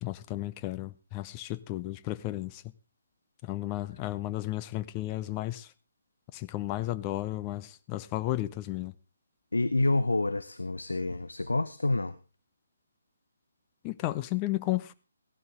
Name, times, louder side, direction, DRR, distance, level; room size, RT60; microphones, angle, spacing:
voice 1, 0.0-2.7 3.4-5.7 6.3-8.9 13.8-14.9, left 16 dB, 20° left, 0.6 m, -33 dB
voice 2, 9.5-12.2, left 2 dB, 70° left, 0.7 m, -28 dB
15.5 x 12.0 x 3.7 m
figure-of-eight pair, 140°, 0 cm